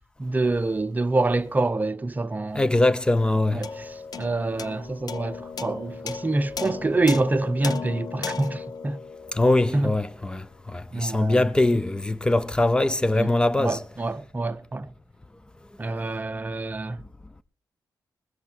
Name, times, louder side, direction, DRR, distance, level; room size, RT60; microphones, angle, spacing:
voice 1, 0.2-2.6 3.5-3.8 4.2-9.0 9.7-9.9 10.9-11.4 13.1-13.3 13.6-14.9 15.8-17.0, right 2 dB, 20° right, 0.8 m, -26 dB
voice 2, 2.5-3.6 9.3-10.4 10.7-13.8, left 2 dB, 10° left, 0.7 m, -22 dB
sound 1, 3.6-10.2, left 5 dB, 55° left, 0.7 m, -35 dB
20.5 x 7.8 x 4.5 m
wide cardioid pair, 115°, 8 cm